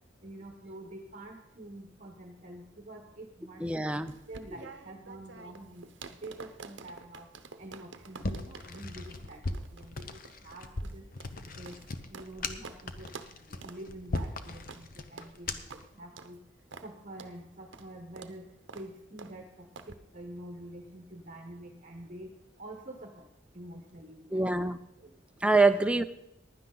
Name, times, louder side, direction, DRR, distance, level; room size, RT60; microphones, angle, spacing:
voice 1, 0.2-7.3 7.6-11.0 11.5-11.8 12.1-13.1 13.4-16.4 16.8-18.5 18.7-23.3 23.5-24.5 25.0-25.6, right 1 dB, 40° right, 3 dB, 1.1 m, -47 dB
voice 2, 3.6-4.1 24.3-24.8 25.4-26.0, right 3 dB, 5° right, 9 dB, 0.5 m, -25 dB
sound 1, 4.1-12.3 12.6-12.8 13.1-13.3 13.6-13.8 14.1-14.3 14.7-14.8 15.2-15.3 15.7-15.8 16.2-16.3 16.7-16.9 17.2-17.3 17.7-17.9 18.2-18.3 18.7-18.9 19.2-19.3 19.7-19.9, right 4 dB, 70° right, 0.8 m, -48 dB
sound 2, 8.2-15.9, left 2 dB, 45° left, 0.8 m, -38 dB
15.5 x 11.0 x 3.9 m, 0.80 s
head